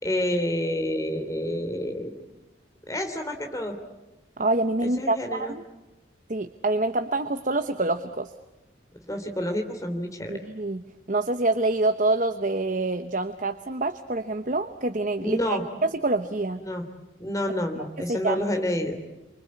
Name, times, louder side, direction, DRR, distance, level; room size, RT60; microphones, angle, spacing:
voice 1, 0.0-2.1 2.9-3.8 4.8-5.6 9.1-10.4 15.2-15.6 16.6-16.8 17.2-19.0, left 1 dB, 15° left, 5 dB, 3.0 m, -29 dB
voice 2, 4.4-5.6 6.3-8.3 10.3-10.8 11.1-16.6 18.1-18.4, right 2 dB, 40° right, 9 dB, 0.9 m, -26 dB
27.0 x 25.0 x 8.5 m, 1.0 s
head